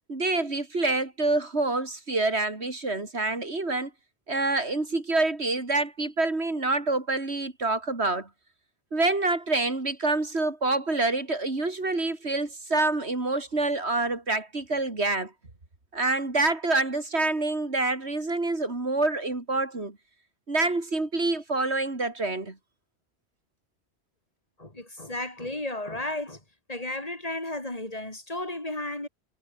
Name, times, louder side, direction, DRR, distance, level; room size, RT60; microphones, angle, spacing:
voice 1, 0.1-3.9 4.3-8.3 8.9-15.3 15.9-20.0 20.5-22.6, right 2 dB, 80° right, 4.0 m, -27 dB
voice 2, 24.6-26.4 26.7-29.1, left 1 dB, 35° left, 4.8 m, -33 dB
omnidirectional pair, 1.1 m